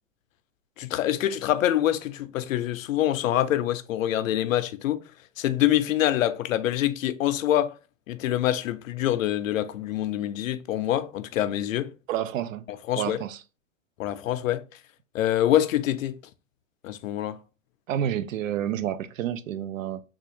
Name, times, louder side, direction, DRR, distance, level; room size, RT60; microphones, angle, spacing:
voice 1, 0.8-5.0 5.4-7.7 8.1-11.9 12.9-13.2 14.0-14.6 15.1-16.2 16.8-17.4, left 12 dB, 85° left, 0.6 m, -25 dB
voice 2, 12.1-12.6 13.0-13.4 17.9-20.0, right 10 dB, 90° right, 0.5 m, -29 dB
3.5 x 2.4 x 2.9 m
supercardioid pair, 165°, 39 cm